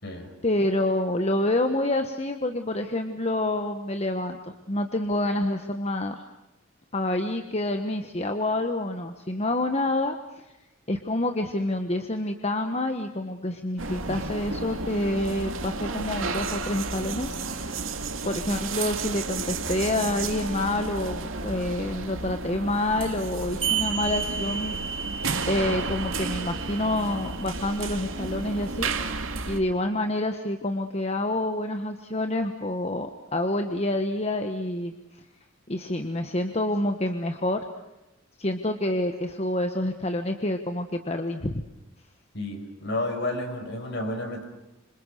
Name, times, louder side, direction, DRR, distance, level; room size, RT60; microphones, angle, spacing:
voice 1, 0.4-6.2 6.9-10.4 10.9-17.9 18.2-24.8 25.5-28.9 29.5-34.9 35.7-37.6 38.4-41.6, left 1 dB, 30° left, 6 dB, 1.3 m, -28 dB
sound 1, 13.8-29.6, right 3 dB, 80° right, 2.5 m, -32 dB
sound 2, 23.6-28.6, right 8 dB, 30° right, 6.1 m, -33 dB
voice 2, 42.3-44.4, left 1 dB, 55° left, 4 dB, 5.7 m, -31 dB
27.0 x 26.0 x 6.6 m, 0.96 s
head